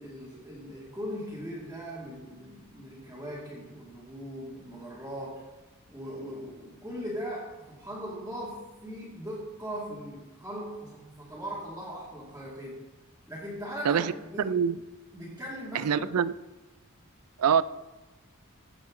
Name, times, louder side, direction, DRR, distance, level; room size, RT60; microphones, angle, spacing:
voice 1, 0.0-5.5 5.9-12.8 13.3-14.7 15.1-16.1, equal, 10° right, -8 dB, 2.3 m, -39 dB
voice 2, 14.4-14.8 15.7-16.3 17.4-17.6, right 7 dB, 85° right, 17 dB, 0.4 m, -24 dB
16.5 x 7.4 x 3.8 m, 1.1 s
head